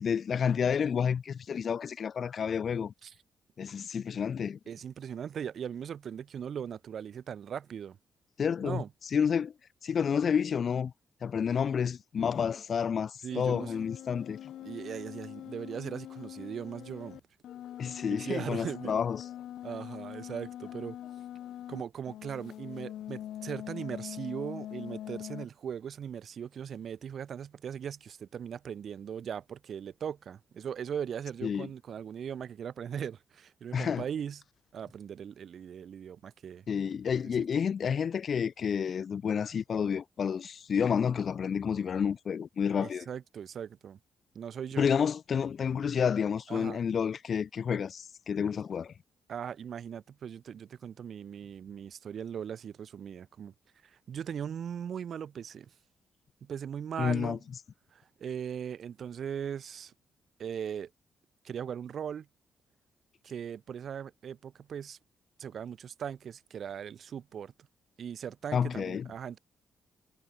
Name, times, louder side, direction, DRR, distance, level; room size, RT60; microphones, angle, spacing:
voice 1, 0.0-2.9 3.6-4.6 8.4-8.8 9.1-9.5 9.8-10.9 11.2-14.5 17.8-19.2 31.4-31.7 33.7-34.0 36.7-43.1 44.8-48.9 57.0-57.4 68.5-69.1, left 7 dB, 50° left, 1.1 m, -30 dB
voice 2, 4.7-8.0 8.6-8.9 13.2-13.8 14.6-17.2 18.0-18.9 19.6-21.0 21.7-34.4 34.7-36.6 37.4-37.5 42.8-44.0 44.3-44.9 46.5-46.8 49.3-53.5 53.8-55.7 56.4-57.4 57.9-59.9 60.4-60.9 61.4-62.3 63.2-65.0 65.4-67.5 68.0-69.4, right 8 dB, 60° right, 1.1 m, -39 dB
sound 1, 13.3-21.8 22.1-25.5, left 11 dB, 85° left, 0.7 m, -43 dB
cardioid pair, 115°, 0 cm